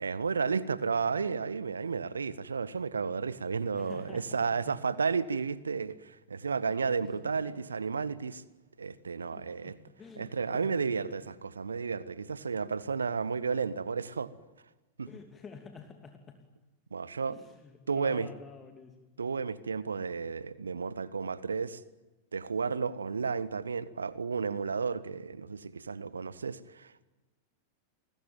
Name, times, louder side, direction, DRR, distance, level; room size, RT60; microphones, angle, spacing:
voice 1, 0.0-8.4 8.8-9.8 10.2-14.3 15.0-15.1 16.9-17.4 17.9-18.3 19.2-21.8 22.3-27.1, right 5 dB, 75° right, 1.2 m, -32 dB
voice 2, 3.7-4.8 7.0-7.5 9.3-10.8 11.1-11.3 15.1-16.4 17.2-19.1, left 5 dB, 20° left, 2.7 m, -50 dB
30.0 x 20.5 x 9.2 m
figure-of-eight pair, 90°, 0 cm